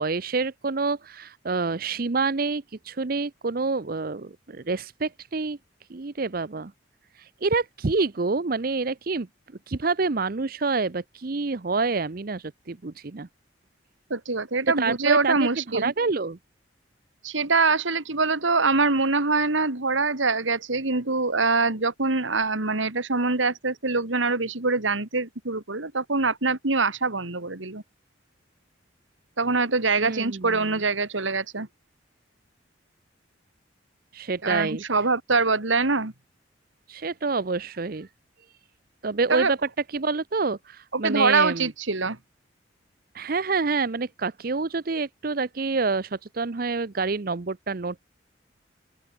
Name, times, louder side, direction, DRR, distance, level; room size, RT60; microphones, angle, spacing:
voice 1, 0.0-5.6 5.9-6.7 7.2-9.3 9.7-13.3 14.8-16.4 30.0-30.6 34.1-34.8 36.9-38.1 39.0-39.6 39.9-41.7 43.1-48.0, right 4 dB, 50° right, 0.7 m, -27 dB
voice 2, 14.1-15.9 17.2-27.8 29.4-31.7 34.4-36.1 39.3-39.5 40.9-42.2, right 3 dB, 85° right, 2.4 m, -24 dB
open air
head